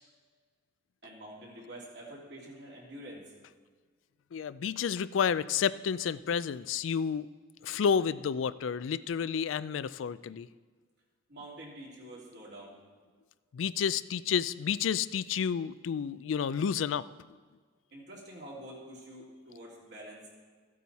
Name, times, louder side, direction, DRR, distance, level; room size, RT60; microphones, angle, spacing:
voice 1, 1.0-3.2 11.3-12.8 17.9-20.3, right 1 dB, 60° right, -4 dB, 3.0 m, -47 dB
voice 2, 4.3-7.3 7.6-10.5 13.5-17.1, left 7 dB, 85° left, 16 dB, 0.4 m, -30 dB
14.5 x 8.5 x 4.1 m, 1.5 s
head